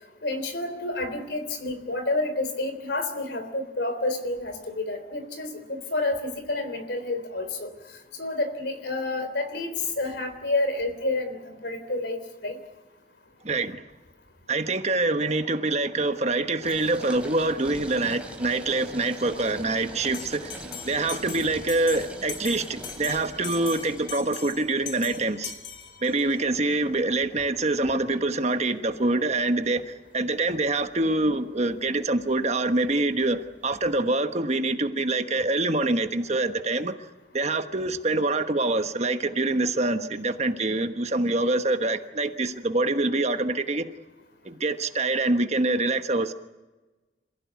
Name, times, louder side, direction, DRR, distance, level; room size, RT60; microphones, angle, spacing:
voice 1, 0.2-7.7 8.2-12.6, left 2 dB, 65° left, 3.6 m, -29 dB
voice 2, 13.4-13.8 14.5-25.5 26.0-37.0 37.3-43.8 44.4-46.3, right 2 dB, 40° right, 1.3 m, -25 dB
sound 1, 16.6-34.0, right 1 dB, 5° right, 3.1 m, -44 dB
Bell, 20.1-26.4, left 7 dB, 85° left, 4.3 m, -40 dB
27.5 x 16.0 x 9.5 m
head